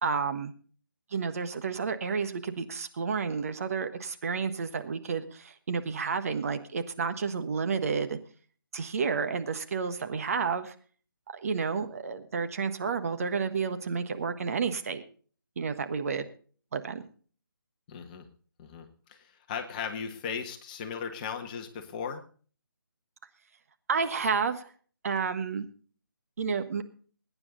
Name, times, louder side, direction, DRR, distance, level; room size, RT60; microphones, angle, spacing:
voice 1, 0.0-0.5 1.1-8.2 8.7-10.7 11.3-15.0 15.6-16.3 16.7-17.0 23.9-24.7 25.0-25.6 26.4-26.8, right 5 dB, 40° right, 8 dB, 1.3 m, -30 dB
voice 2, 17.9-18.3 18.6-22.2, left 6 dB, 25° left, 6 dB, 1.5 m, -37 dB
21.0 x 9.8 x 3.9 m, 0.42 s
figure-of-eight pair, 150°, 12 cm